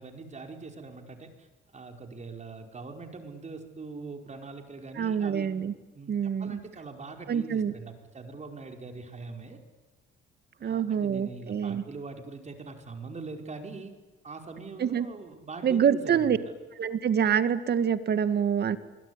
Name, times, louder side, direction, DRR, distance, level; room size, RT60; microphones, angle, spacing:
voice 1, 0.0-1.5 1.7-5.5 5.9-6.1 6.4-9.6 10.6-13.9 14.2-16.4, right 4 dB, 35° right, 4 dB, 5.2 m, -42 dB
voice 2, 5.0-5.7 6.1-6.6 7.3-7.7 10.6-11.8 14.8-15.1 15.6-16.4 16.8-18.8, right 8 dB, 55° right, 11 dB, 2.1 m, -26 dB
27.0 x 22.5 x 9.9 m, 1.2 s
cardioid pair, 90°, 20 cm